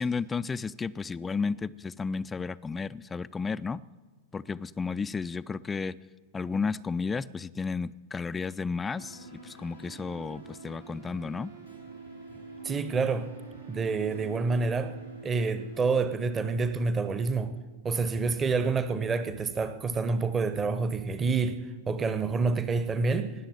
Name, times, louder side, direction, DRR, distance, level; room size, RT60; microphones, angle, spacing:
voice 1, 0.0-3.8 4.3-6.0 6.3-11.5, left 5 dB, 15° left, 14 dB, 0.4 m, -33 dB
sound 1, 8.9-15.8, right 4 dB, 85° right, 3.6 m, -46 dB
voice 2, 12.6-13.3 13.7-15.0 15.2-17.5 17.8-23.3, right 4 dB, 20° right, 12 dB, 0.9 m, -28 dB
19.0 x 7.5 x 8.8 m, 1.4 s
figure-of-eight pair, 90°, 0 cm